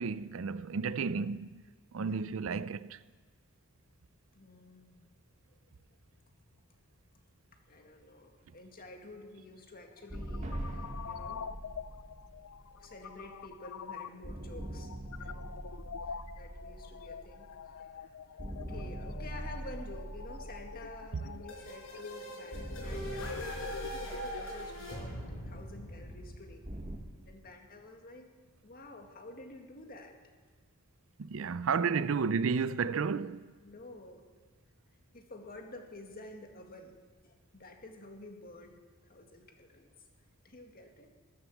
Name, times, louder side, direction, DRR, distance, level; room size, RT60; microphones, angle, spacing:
voice 1, 0.0-1.6 1.9-3.0 31.2-33.4, right 5 dB, 65° right, 0.5 m, -32 dB
voice 2, 2.0-2.3 4.3-5.0 5.5-5.6 7.7-11.5 12.7-15.5 16.1-18.4 18.7-23.7 23.9-26.6 27.2-28.3 28.6-30.2 31.7-32.1 33.6-34.2 35.1-37.0 37.2-38.8 39.1-39.9 40.4-41.1, left 2 dB, 45° left, 1.9 m, -50 dB
sound 1, 9.9-24.4, left 6 dB, 90° left, 0.5 m, -46 dB
sound 2, 10.1-13.7 14.2-18.0 18.4-22.0 22.5-27.0, right 1 dB, 35° right, 1.5 m, -43 dB
sound 3, 21.5-27.1, right 1 dB, 70° left, 5.1 m, -43 dB
13.0 x 11.5 x 7.1 m
head